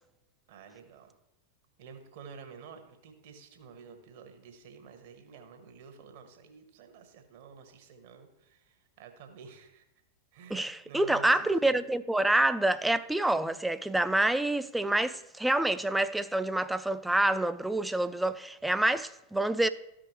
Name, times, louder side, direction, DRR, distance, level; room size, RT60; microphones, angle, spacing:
voice 1, 0.5-1.1 1.8-9.8 10.3-11.8, right 5 dB, 50° right, 1.2 m, -50 dB
voice 2, 10.5-19.7, right 1 dB, 5° right, 0.3 m, -27 dB
13.5 x 5.1 x 3.0 m
figure-of-eight pair, 90°, 0 cm